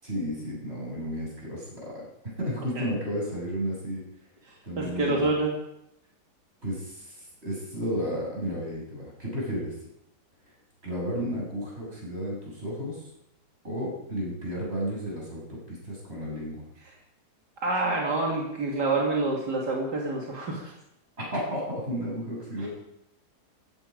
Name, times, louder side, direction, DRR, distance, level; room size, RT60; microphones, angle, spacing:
voice 1, 0.0-2.1 2.4-4.0 4.6-5.3 6.6-9.7 10.8-13.1 13.6-16.7 21.3-22.7, equal, 40° right, -4 dB, 7.6 m, -33 dB
voice 2, 4.8-5.5 17.6-20.7 22.6-22.7, right 2 dB, 80° right, -1 dB, 3.0 m, -27 dB
16.5 x 14.5 x 5.2 m, 0.81 s
omnidirectional pair, 1.8 m